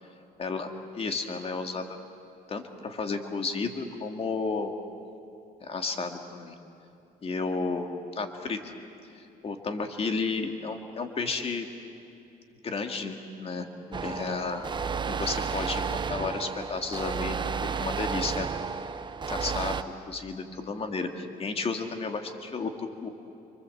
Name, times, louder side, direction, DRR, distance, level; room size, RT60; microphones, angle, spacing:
voice 1, 0.4-2.0 2.5-4.7 5.6-6.6 7.2-8.8 9.2-11.7 12.6-14.6 15.0-18.5 19.3-19.8 20.1-23.1, left 4 dB, 35° left, 5 dB, 2.2 m, -32 dB
sound 1, 13.9-19.8, right 6 dB, 25° right, 0.9 m, -32 dB
26.0 x 24.0 x 7.9 m, 2.6 s
cardioid pair, 110°, 17 cm